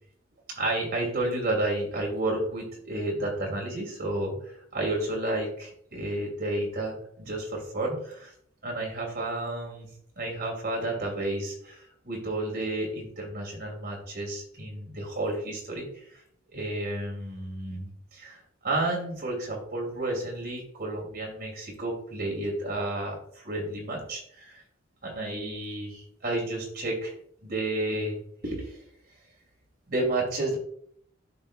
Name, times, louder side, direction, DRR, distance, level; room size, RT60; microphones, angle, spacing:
voice 1, 0.5-8.3 8.6-9.9 10.2-16.2 16.5-24.6 25.0-27.1 27.4-28.2 28.4-28.8 29.9-30.6, right 2 dB, 55° right, -1 dB, 2.6 m, -31 dB
12.5 x 4.3 x 2.3 m, 0.65 s
head